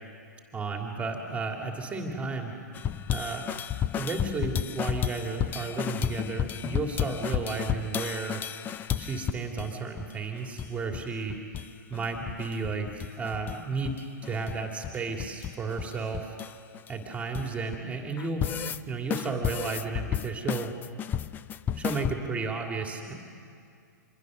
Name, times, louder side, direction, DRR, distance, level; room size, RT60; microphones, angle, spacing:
voice 1, 0.5-2.5 3.1-3.5 4.0-8.4 9.0-11.3 11.9-16.4 16.9-18.5 18.9-20.7 21.7-23.1, right 4 dB, 15° right, 2 dB, 2.7 m, -33 dB
sound 1, 2.7-9.7 10.0-10.1 10.3-11.0 11.3-11.7 11.9-13.6 13.8-17.8 18.2-18.8 19.1-22.1, left 10 dB, 20° left, 0.5 m, -32 dB
26.0 x 22.0 x 6.5 m, 2.3 s
hypercardioid pair, 120°, 10 cm